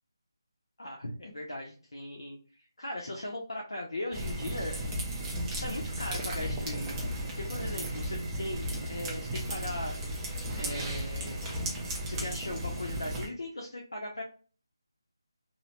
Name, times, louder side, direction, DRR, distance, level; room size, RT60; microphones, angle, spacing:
voice 1, 0.8-2.4 2.8-4.8 5.5-6.9 7.4-10.0 10.5-11.7 12.0-14.2, left 1 dB, 75° left, -1 dB, 0.7 m, -38 dB
sound 1, 4.1-13.3, right 1 dB, 10° right, 0.3 m, -35 dB
2.8 x 2.1 x 2.7 m, 0.38 s
figure-of-eight pair, 170°, 2 cm